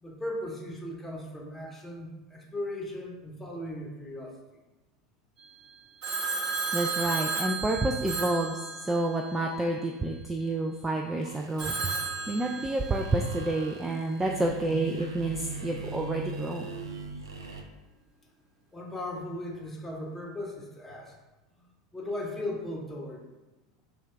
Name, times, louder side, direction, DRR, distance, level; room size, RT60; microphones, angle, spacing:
voice 1, 0.0-4.3 18.7-21.2 21.6-21.7 21.9-23.3, left 1 dB, 10° left, -1 dB, 0.9 m, -37 dB
Telephone, 6.0-9.3 11.6-13.1, right 4 dB, 50° right, 1.5 m, -33 dB
voice 2, 6.7-11.7 12.3-16.7, right 2 dB, 10° right, 1 dB, 0.3 m, -29 dB
sound 1, 11.2-17.6, right 4 dB, 75° right, 0.5 m, -40 dB
4.2 x 2.7 x 3.5 m, 1.1 s
figure-of-eight pair, 80°, 2 cm